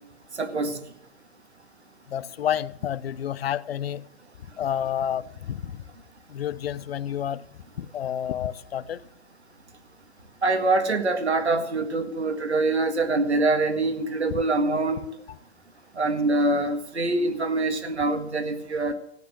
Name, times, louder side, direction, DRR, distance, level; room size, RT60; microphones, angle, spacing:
voice 1, 0.4-0.8 10.4-15.1 16.0-18.9, right 2 dB, 80° right, 2.0 m, -24 dB
voice 2, 2.1-4.0 4.6-5.8 6.3-7.4 7.8-9.0 14.3-14.4, left 10 dB, 65° left, 0.7 m, -29 dB
14.5 x 8.9 x 7.4 m
figure-of-eight pair, 105°, 33 cm